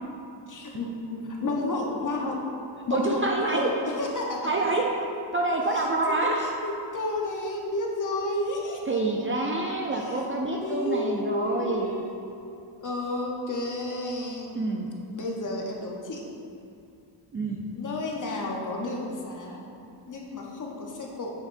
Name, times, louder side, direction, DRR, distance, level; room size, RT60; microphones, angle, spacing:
voice 1, 0.5-2.4 2.9-3.2 3.5-4.7 5.7-5.9 6.2-9.0 9.9-10.2 10.6-12.5 12.8-14.6 15.1-16.2 17.7-19.6 20.1-21.3, left 2 dB, 40° left, -1 dB, 0.9 m, -32 dB
voice 2, 2.9-3.7 4.4-4.9 5.3-6.4 8.9-11.9 14.5-14.9 17.3-17.6, right 2 dB, 30° right, -1 dB, 0.4 m, -27 dB
9.1 x 4.9 x 2.6 m, 2.6 s
wide cardioid pair, 140°, 47 cm